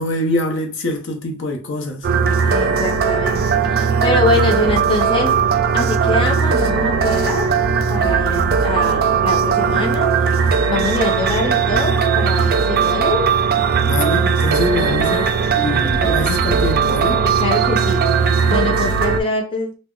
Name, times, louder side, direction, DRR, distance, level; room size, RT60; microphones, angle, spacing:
voice 1, 0.0-2.1 13.9-15.3 15.5-17.2, left 1 dB, 60° left, 0.6 m, -24 dB
sound 1, 2.0-19.2, right 6 dB, 50° right, 0.3 m, -18 dB
voice 2, 2.4-5.4 5.7-7.5 7.9-10.4 10.7-13.4 14.9-15.1 15.6-16.2 17.2-18.1 18.5-19.8, left 2 dB, 25° left, 0.7 m, -24 dB
2.3 x 2.0 x 3.6 m
head